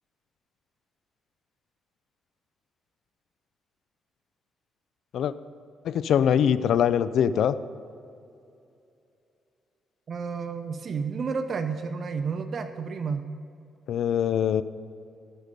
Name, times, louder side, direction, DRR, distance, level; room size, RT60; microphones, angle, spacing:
voice 1, 5.8-7.6 13.9-14.6, left 9 dB, 70° left, 15 dB, 0.5 m, -23 dB
voice 2, 10.1-13.3, right 5 dB, 50° right, 8 dB, 0.6 m, -31 dB
18.0 x 6.7 x 5.3 m, 2.6 s
cardioid pair, 90°, 0 cm